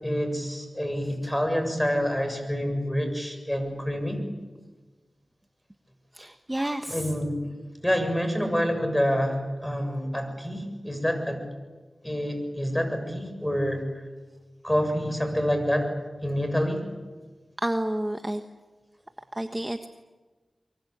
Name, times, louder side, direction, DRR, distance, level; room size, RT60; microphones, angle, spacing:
voice 1, 0.0-4.2 6.9-7.4 7.8-11.4 12.0-13.8 14.6-15.9 16.2-16.8, equal, 10° left, 6 dB, 7.3 m, -27 dB
voice 2, 6.1-7.1 17.6-18.4 19.3-19.9, right 1 dB, 15° right, 6 dB, 1.4 m, -30 dB
24.0 x 23.5 x 8.8 m, 1.3 s
cardioid pair, 50°, 0 cm